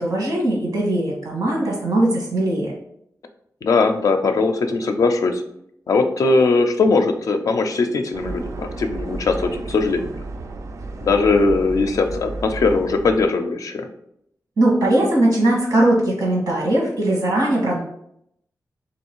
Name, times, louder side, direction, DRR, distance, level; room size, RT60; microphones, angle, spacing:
voice 1, 0.0-2.7 14.6-17.8, right 1 dB, 85° right, -3 dB, 1.4 m, -19 dB
voice 2, 3.6-5.4 5.9-10.1 11.0-13.9, left 3 dB, 65° left, 6 dB, 0.4 m, -20 dB
sound 1, 8.1-13.2, right 2 dB, 55° right, 0.4 m, -32 dB
3.2 x 2.9 x 4.5 m, 0.74 s
wide cardioid pair, 155°, 6 cm